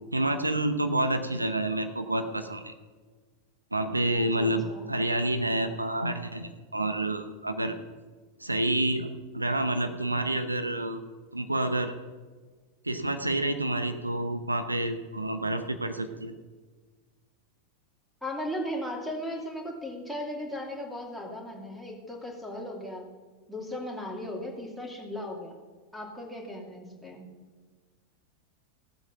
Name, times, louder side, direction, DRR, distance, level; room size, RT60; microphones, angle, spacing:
voice 1, 0.1-2.7 3.7-7.8 8.4-9.1 9.3-11.0 11.3-11.9 12.8-16.3, right 1 dB, 85° right, 8 dB, 0.8 m, -28 dB
voice 2, 4.2-4.9 18.2-23.1 23.5-25.6 25.9-27.2, left 1 dB, ahead, -2 dB, 2.7 m, -37 dB
16.5 x 7.9 x 5.7 m, 1.4 s
figure-of-eight pair, 90°, 0 cm